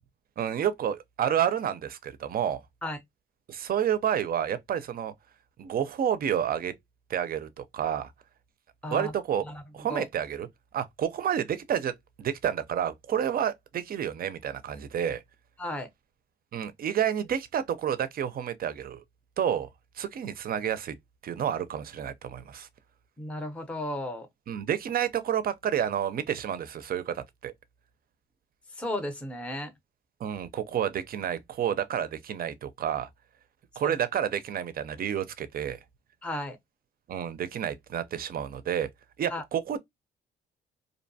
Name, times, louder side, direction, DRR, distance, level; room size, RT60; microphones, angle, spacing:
voice 1, 0.4-2.6 3.5-5.1 5.6-6.7 7.1-8.1 8.9-9.4 9.7-10.5 10.7-11.9 12.2-15.2 16.5-19.0 19.4-19.7 20.0-20.9 21.2-22.7 24.5-27.5 30.2-33.1 33.8-35.8 37.1-38.9 39.2-39.8, right 9 dB, 50° right, 0.5 m, -29 dB
voice 2, 23.2-24.3 28.8-29.7 33.8-33.9 36.2-36.6 39.3-39.4, left 1 dB, 5° left, 0.6 m, -34 dB
2.6 x 2.2 x 2.6 m
cardioid pair, 90°, 20 cm